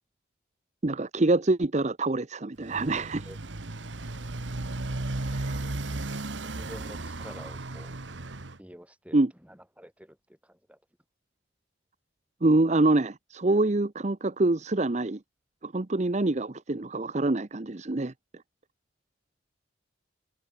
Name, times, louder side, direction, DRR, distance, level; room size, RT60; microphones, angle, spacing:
voice 1, 0.8-3.3 5.2-5.6 9.1-9.3 12.4-15.2 15.6-18.1, right 2 dB, 35° right, 0.8 m, -25 dB
Motorcycle, 2.6-8.6, right 2 dB, 75° right, 1.5 m, -35 dB
voice 2, 6.5-7.9 8.6-10.2 10.4-10.8, equal, 5° right, 4.7 m, -47 dB
open air
head